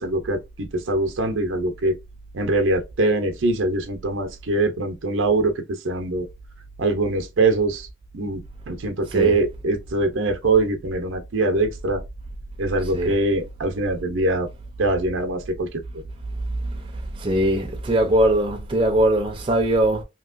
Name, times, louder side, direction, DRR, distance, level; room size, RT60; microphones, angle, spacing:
voice 1, 0.0-2.0 2.3-6.3 6.8-7.9 8.1-12.0 12.6-14.5 14.8-15.8, right 2 dB, 90° right, 0.6 m, -23 dB
voice 2, 17.2-20.0, right 1 dB, 25° right, 0.6 m, -20 dB
2.9 x 2.8 x 2.5 m
head